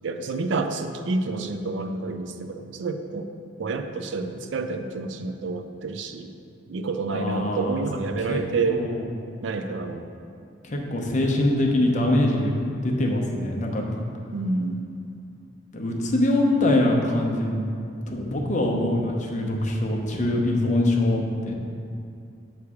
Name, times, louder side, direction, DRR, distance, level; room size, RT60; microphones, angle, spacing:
voice 1, 0.0-6.3 6.7-8.8 9.4-10.1 14.3-14.9, right 3 dB, 75° right, 7 dB, 0.4 m, -29 dB
voice 2, 7.1-8.4 8.7-9.1 10.6-12.5 12.8-14.0 15.7-17.6 18.1-21.6, left 1 dB, 40° left, 0 dB, 0.7 m, -23 dB
8.1 x 3.2 x 4.8 m, 2.5 s
head